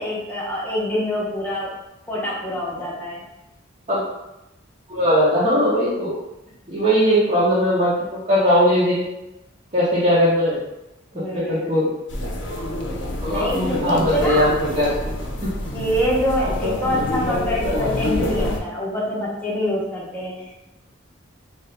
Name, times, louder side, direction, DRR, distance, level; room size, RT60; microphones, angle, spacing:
voice 1, 0.0-1.7 2.1-3.2 11.1-11.8 13.3-14.4 15.7-20.6, equal, 10° left, -6 dB, 0.8 m, -25 dB
voice 2, 4.9-6.2 6.7-7.9 8.3-9.0 9.7-10.6 11.3-11.9 13.2-13.5 13.8-15.5 17.6-17.8, equal, 35° right, -12 dB, 0.9 m, -19 dB
sound 1, 12.1-18.6, left 1 dB, 60° left, 0.6 m, -26 dB
2.9 x 2.6 x 3.2 m, 0.94 s
head